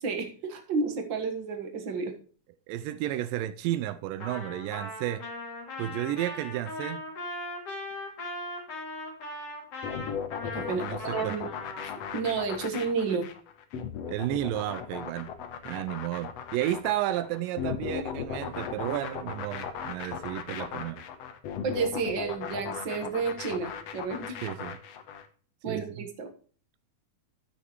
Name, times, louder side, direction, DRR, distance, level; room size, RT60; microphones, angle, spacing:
voice 1, 0.0-2.1 10.5-11.5 11.8-13.3 21.6-24.4 25.6-26.3, right 4 dB, 50° right, 1.5 m, -31 dB
voice 2, 2.7-5.2 5.8-7.0 10.7-11.4 14.1-15.3 15.7-21.0 24.4-24.8 25.7-25.9, right 13 dB, 85° right, 2.2 m, -32 dB
Trumpet, 4.2-12.2, left 2 dB, 45° left, 3.4 m, -39 dB
sound 1, 9.8-25.3, left 8 dB, 65° left, 1.7 m, -37 dB
14.5 x 6.5 x 3.1 m
omnidirectional pair, 3.9 m